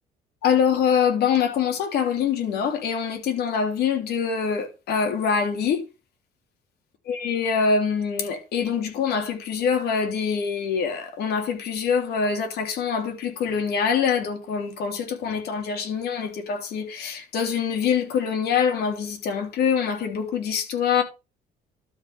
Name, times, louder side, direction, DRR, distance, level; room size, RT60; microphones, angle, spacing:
voice 1, 0.4-5.8 7.0-21.0, left 6 dB, 70° left, 3.3 m, -24 dB
12.0 x 5.3 x 5.9 m
cardioid pair, 110°, 17 cm